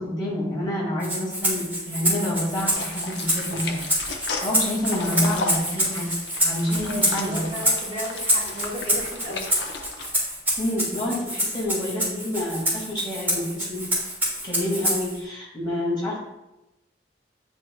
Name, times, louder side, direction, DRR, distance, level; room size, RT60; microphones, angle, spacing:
voice 1, 0.0-3.8 4.4-6.1 6.4-7.5 10.6-13.9 14.4-16.2, left 1 dB, 25° left, -6 dB, 2.2 m, -28 dB
Rattle (instrument), 1.0-15.2, equal, 10° right, 2.2 m, -27 dB
sound 1, 2.6-10.1, left 3 dB, 80° left, 0.8 m, -35 dB
voice 2, 4.9-5.4 6.7-9.5, equal, 40° right, -6 dB, 1.8 m, -34 dB
9.5 x 4.9 x 2.3 m, 0.96 s
head